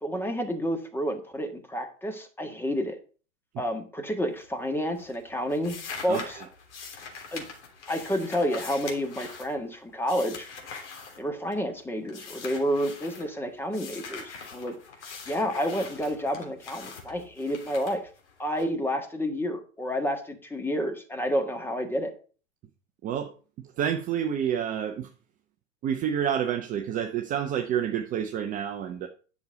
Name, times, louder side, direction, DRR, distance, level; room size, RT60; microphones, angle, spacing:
voice 1, 0.0-3.0 3.6-5.8 6.0-6.4 7.3-7.5 7.9-10.5 11.2-14.7 15.3-18.0 18.4-22.1, equal, 5° left, 1.6 m, -29 dB
sound 1, 4.3-4.7 5.0-11.7 12.1-13.3 13.7-18.6, left 5 dB, 55° left, 3.3 m, -43 dB
voice 2, 6.1-6.4 23.0-23.3 23.8-25.1 25.8-29.1, right 9 dB, 20° right, 0.7 m, -29 dB
10.5 x 6.4 x 5.2 m
figure-of-eight pair, 105°, 40 cm